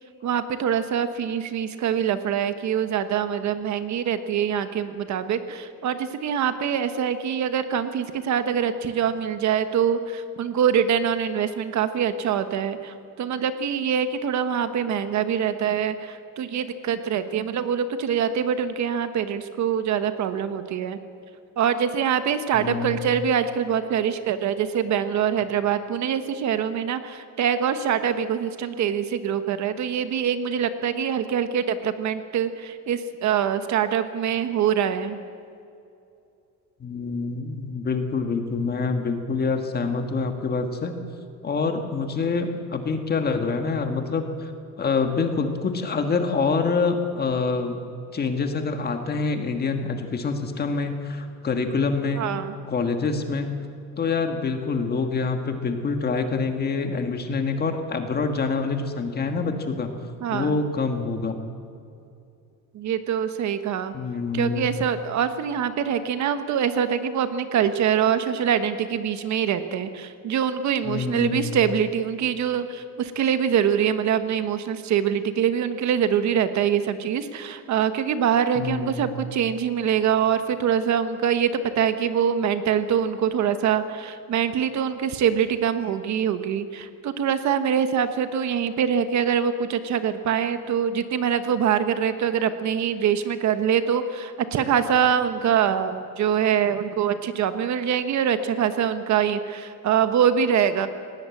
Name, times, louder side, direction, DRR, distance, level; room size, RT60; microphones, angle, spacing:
voice 1, 0.2-21.0 21.6-35.2 52.2-52.5 60.2-60.6 62.7-63.9 64.3-100.9, right 8 dB, 55° right, 10 dB, 1.2 m, -24 dB
voice 2, 22.5-23.1 36.8-41.0 41.4-44.5 44.8-47.8 48.1-52.3 52.7-53.5 54.0-59.9 60.3-61.4 63.9-64.8 70.8-71.5 78.6-79.2, left 4 dB, 30° left, 6 dB, 1.6 m, -26 dB
19.5 x 18.0 x 8.4 m, 2.6 s
cardioid pair, 175°, 35 cm